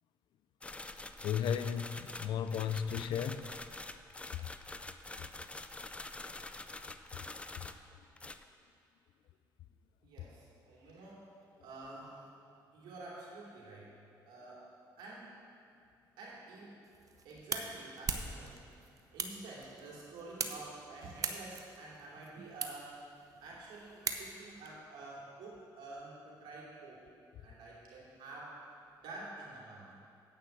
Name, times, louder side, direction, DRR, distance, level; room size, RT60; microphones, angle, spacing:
sound 1, 0.6-7.9 8.2-8.4, left 2 dB, 15° left, 0.4 m, -46 dB
voice 1, 1.2-3.5, left 8 dB, 75° left, 12 dB, 0.4 m, -34 dB
voice 2, 10.0-11.3 11.6-12.4 12.7-13.9 14.3-14.6 15.0-15.3 16.2-16.7 17.2-18.6 19.1-23.0 23.4-27.0 27.4-28.5 29.0-29.9, right 2 dB, 85° right, -5 dB, 2.9 m, -49 dB
sound 2, 16.8-24.7, right 5 dB, 45° right, 0.8 m, -42 dB
9.1 x 5.7 x 7.8 m, 2.5 s
cardioid pair, 85°, 8 cm